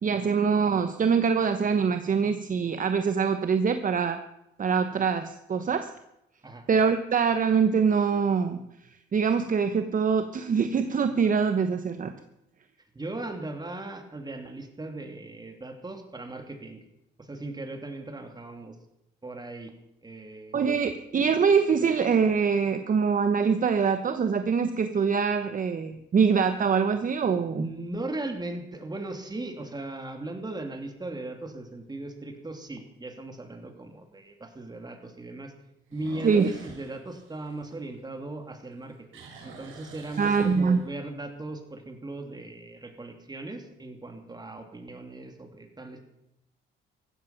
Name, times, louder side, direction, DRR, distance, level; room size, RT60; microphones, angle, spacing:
voice 1, 0.0-4.2 4.6-5.9 6.7-8.6 9.1-12.1 20.5-27.7 36.2-36.5 40.2-40.8, right 6 dB, 40° right, 9 dB, 1.0 m, -24 dB
voice 2, 12.9-16.8 17.2-18.7 19.2-19.7 20.0-20.7 27.5-35.5 35.9-46.1, right 2 dB, 20° right, 5 dB, 2.9 m, -38 dB
sound 1, 22.9-23.0 23.5-23.6 28.9-29.3 29.8-29.9 30.5-30.6 30.8-30.9 32.4-32.5 35.8-38.4 38.7-41.1, right 4 dB, 85° right, 4.7 m, -48 dB
15.5 x 14.0 x 6.0 m, 0.84 s
cardioid pair, 90°, 20 cm